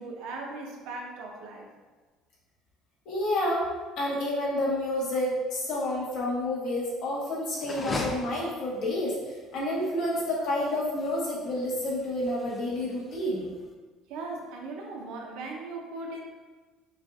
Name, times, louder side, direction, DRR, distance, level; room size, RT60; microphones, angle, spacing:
voice 1, 0.0-1.7 14.1-16.3, right 3 dB, 70° right, 1 dB, 0.7 m, -38 dB
voice 2, 3.0-3.7 4.0-13.5, left 1 dB, 55° left, -5 dB, 1.3 m, -29 dB
sound 1, 7.5-13.7, left 2 dB, 15° left, 0.4 m, -40 dB
6.4 x 2.5 x 2.4 m, 1.3 s
cardioid pair, 160°, 0 cm